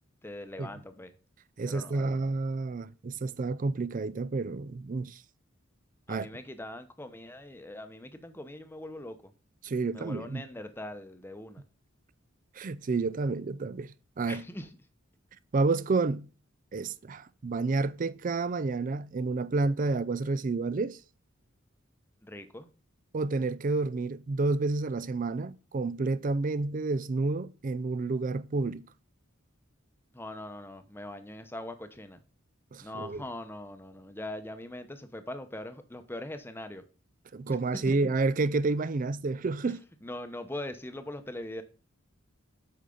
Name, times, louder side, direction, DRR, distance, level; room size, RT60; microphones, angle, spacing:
voice 1, 0.2-1.1 1.6-2.3 6.1-9.3 9.9-11.6 14.3-14.7 22.2-22.7 30.1-32.2 32.8-36.8 37.5-37.9 39.6-39.7 40.0-41.6, left 1 dB, 10° left, 0.8 m, -41 dB
voice 2, 1.6-5.2 6.1-6.3 9.6-10.4 12.6-14.4 15.5-16.3 16.7-21.0 23.1-28.8 32.7-33.2 37.3-39.8, right 3 dB, 40° right, 0.4 m, -30 dB
8.4 x 5.7 x 3.8 m
head